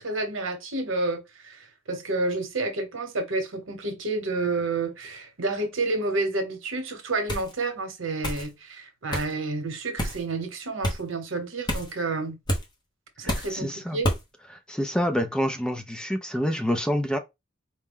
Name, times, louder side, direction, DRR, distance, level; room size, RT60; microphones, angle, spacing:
voice 1, 0.0-12.4 13.2-14.1, right 3 dB, 75° right, 1.0 m, -30 dB
sound 1, 7.3-7.5 8.2-8.5 9.1-9.3 10.0-10.2 10.8-11.0 11.7-11.9 12.5-12.7 13.3-13.6 14.0-14.2, equal, 20° left, 0.9 m, -28 dB
voice 2, 13.2-14.0 14.7-17.2, equal, 5° left, 0.4 m, -27 dB
4.4 x 2.2 x 3.6 m
head